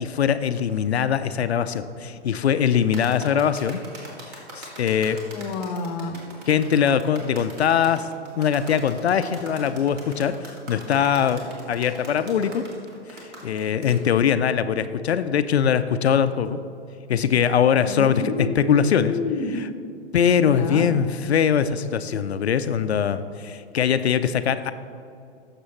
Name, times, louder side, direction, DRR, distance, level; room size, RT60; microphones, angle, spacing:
voice 1, 0.0-3.8 4.5-5.2 6.5-8.1 8.4-10.4 10.7-12.6 13.4-16.6 17.1-19.2 20.1-24.7, left 8 dB, 65° left, 12 dB, 0.5 m, -22 dB
sound 1, 2.9-14.0, right 2 dB, 40° right, 2.2 m, -41 dB
voice 2, 5.3-6.2 17.8-19.5 20.5-20.9, left 4 dB, 30° left, 7 dB, 0.8 m, -29 dB
15.5 x 6.8 x 3.0 m, 2.5 s
figure-of-eight pair, 110°, 35 cm